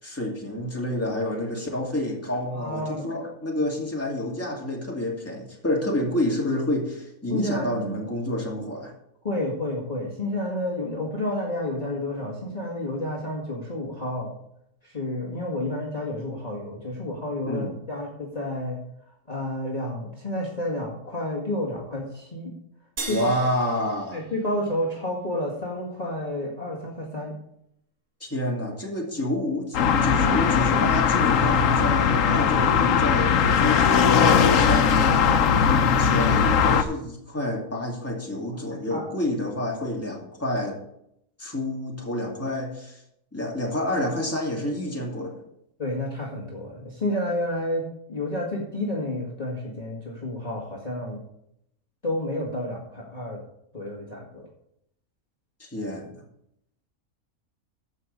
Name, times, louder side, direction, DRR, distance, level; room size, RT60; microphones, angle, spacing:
voice 1, 0.0-8.9 17.5-17.7 23.1-24.2 28.2-35.3 35.6-40.8 41.4-43.0 43.3-45.4 55.6-56.2, left 1 dB, 10° left, -2 dB, 2.4 m, -29 dB
voice 2, 2.5-3.1 7.3-8.0 9.2-14.3 14.8-18.8 19.3-22.5 23.1-23.3 24.1-27.3 38.5-39.0 45.8-51.2 52.0-53.4 53.7-54.4, left 1 dB, 30° left, -4 dB, 2.0 m, -30 dB
sound 1, 23.0-25.6, right 4 dB, 60° right, 2.0 m, -39 dB
sound 2, 29.7-36.8, left 7 dB, 65° left, 1.1 m, -19 dB
14.0 x 5.6 x 5.3 m, 0.76 s
omnidirectional pair, 1.5 m